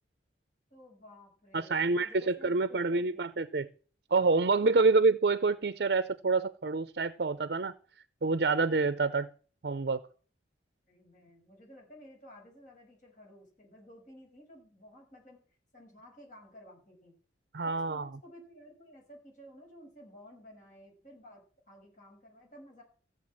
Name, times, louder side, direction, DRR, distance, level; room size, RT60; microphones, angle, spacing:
voice 1, 0.7-3.3 4.6-5.0 10.9-15.4 15.7-17.2 17.6-22.8, equal, 45° left, 6.0 m, -54 dB
voice 2, 1.5-3.7 4.1-7.7 8.2-9.3 9.6-10.0 17.5-18.1, right 3 dB, 60° right, 0.6 m, -27 dB
15.0 x 7.8 x 7.6 m
head